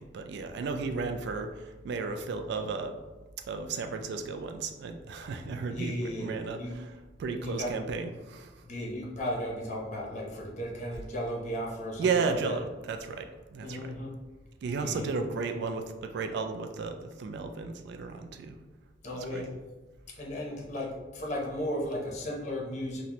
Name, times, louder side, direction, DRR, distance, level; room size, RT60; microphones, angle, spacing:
voice 1, 0.0-3.0 3.5-6.6 7.2-8.5 12.0-13.9 14.6-18.6 19.3-19.5, right 4 dB, 60° right, 6 dB, 0.3 m, -33 dB
voice 2, 5.7-6.8 7.4-7.8 8.6-12.6 13.6-14.1 14.8-15.1 19.0-19.5 20.1-23.0, equal, 40° left, -2 dB, 0.7 m, -35 dB
4.0 x 2.1 x 2.9 m, 1.2 s
head